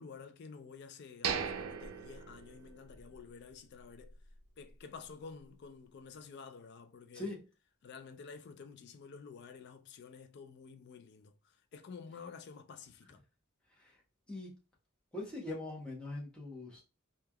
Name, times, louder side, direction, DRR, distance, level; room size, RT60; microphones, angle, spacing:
voice 1, 0.0-4.1 4.6-7.4 7.8-13.2, left 5 dB, 50° left, 0.3 m, -51 dB
sound 1, 1.2-3.2 3.5-3.6 4.1-4.3, right 6 dB, 75° right, 0.4 m, -38 dB
voice 2, 15.1-16.8, left 2 dB, 5° left, 0.8 m, -41 dB
3.2 x 2.2 x 2.2 m
head